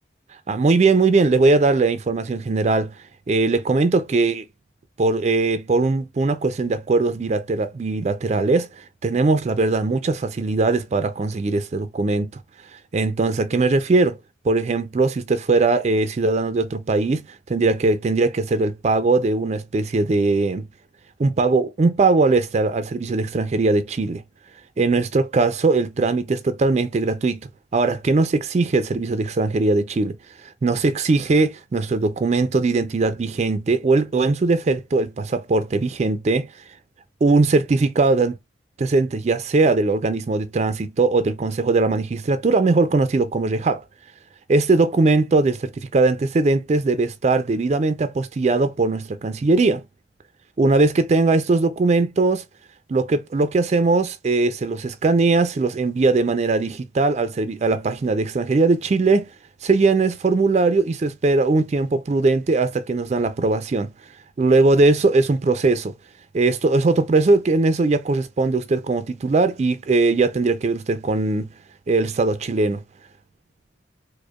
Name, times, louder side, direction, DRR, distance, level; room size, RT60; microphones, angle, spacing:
voice 1, 0.5-2.9 3.3-4.4 5.0-12.3 12.7-14.2 14.4-17.2 17.5-20.6 21.2-24.2 24.8-27.4 27.7-30.2 30.6-36.5 37.2-38.4 38.8-43.8 44.5-49.8 50.6-52.4 52.9-59.3 59.6-63.9 64.4-65.9 66.3-71.5 71.9-72.8, right 3 dB, 35° right, 0.3 m, -20 dB
4.9 x 2.1 x 2.2 m
head